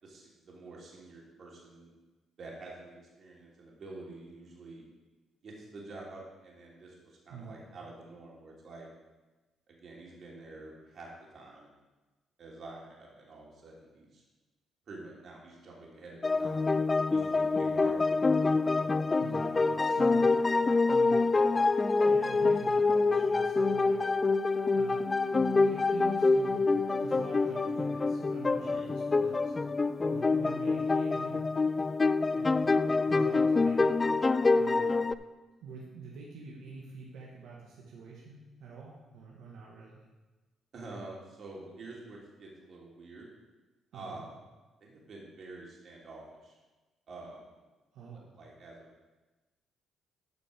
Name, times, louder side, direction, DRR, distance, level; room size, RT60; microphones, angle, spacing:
voice 1, 0.0-1.9 2.4-4.8 5.4-8.9 9.7-11.7 12.4-14.2 14.9-16.7 17.1-18.6 28.6-28.9 40.7-43.3 43.9-44.4 44.8-46.6 47.1-47.6 48.1-49.1, right 2 dB, 55° right, -3 dB, 3.1 m, -48 dB
voice 2, 7.3-7.6 19.2-20.4 20.9-21.3 22.0-24.0 24.7-31.5 32.3-34.0 34.6-34.9 35.6-40.1 43.9-44.2 47.9-48.3, right 4 dB, 85° right, -4 dB, 1.6 m, -47 dB
sound 1, 16.2-35.1, left 3 dB, 25° left, 0.3 m, -26 dB
Wind instrument woodwind instrument, 25.0-30.7, left 4 dB, 5° right, 3.2 m, -49 dB
13.0 x 5.2 x 5.2 m, 1.2 s
cardioid pair, 90°, 0 cm